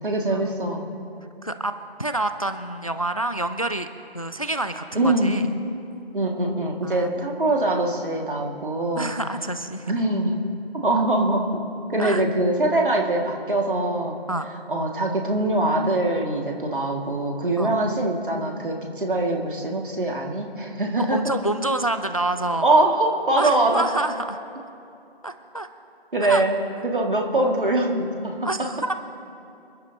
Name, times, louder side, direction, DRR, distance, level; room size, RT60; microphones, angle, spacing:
voice 1, 0.0-0.8 5.0-5.3 6.1-9.1 9.9-10.5 10.8-11.6 11.9-14.2 14.7-21.2 22.6-23.9 26.1-28.5, right 2 dB, 55° right, 1 dB, 2.2 m, -23 dB
voice 2, 1.4-1.7 2.0-3.9 4.1-5.5 6.8-7.5 9.0-9.9 12.0-12.2 14.3-14.5 17.6-17.7 21.1-22.7 23.4-24.4 25.2-25.7 26.2-26.4 28.4-28.9, right 2 dB, 35° left, 9 dB, 0.4 m, -27 dB
27.0 x 10.5 x 2.9 m, 2.7 s
figure-of-eight pair, 165°, 31 cm